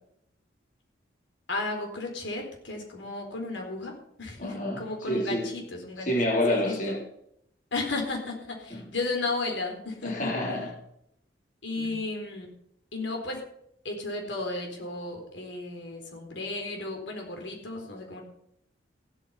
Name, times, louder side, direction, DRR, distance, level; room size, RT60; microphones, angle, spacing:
voice 1, 1.5-6.1 6.5-7.0 7.7-10.3 11.6-12.5 12.9-13.4 13.8-18.2, left 3 dB, 75° left, 2 dB, 4.1 m, -34 dB
voice 2, 4.4-5.5 6.0-7.0 8.7-8.9 10.0-10.7 11.8-11.9, left 1 dB, 45° left, -2 dB, 3.5 m, -28 dB
16.0 x 8.9 x 5.8 m, 0.72 s
head